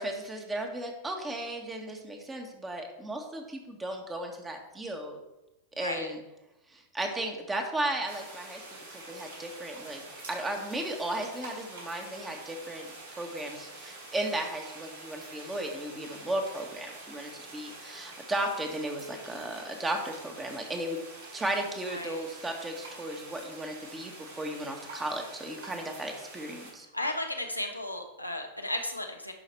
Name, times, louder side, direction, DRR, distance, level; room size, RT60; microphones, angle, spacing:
voice 1, 0.0-5.2 5.8-6.2 6.7-8.6 8.9-10.0 10.3-12.9 13.2-21.0 21.3-26.9, right 1 dB, 15° right, 3 dB, 1.7 m, -35 dB
sound 1, 8.1-26.7, right 2 dB, 65° right, 3.6 m, -46 dB
voice 2, 21.9-22.2 26.9-29.3, left 1 dB, 90° left, 3 dB, 1.1 m, -34 dB
10.5 x 5.7 x 4.6 m, 0.94 s
figure-of-eight pair, 90°, 0 cm